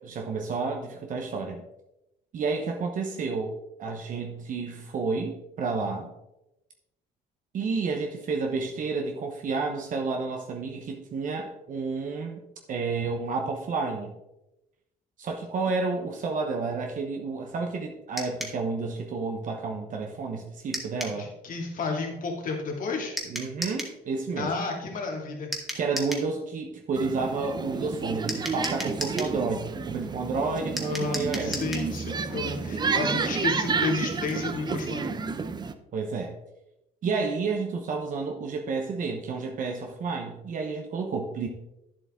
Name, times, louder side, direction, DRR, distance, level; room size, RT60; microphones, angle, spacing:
voice 1, 0.0-1.6 2.3-3.5 3.8-6.1 7.5-12.4 12.7-14.1 15.2-21.3 23.3-24.5 25.7-31.6 35.9-36.4 37.0-41.5, right 4 dB, 50° right, 2 dB, 1.1 m, -30 dB
sound 1, 18.2-18.6 20.7-21.2 23.2-24.0 25.5-26.3 28.3-29.4 30.8-31.9, equal, ahead, 2.0 m, -35 dB
voice 2, 21.1-23.2 24.4-25.5 30.8-35.1, left 4 dB, 55° left, 1 dB, 2.5 m, -32 dB
sound 2, 26.9-35.7, right 4 dB, 25° right, 0.6 m, -30 dB
10.0 x 7.5 x 3.7 m, 0.91 s
cardioid pair, 110°, 17 cm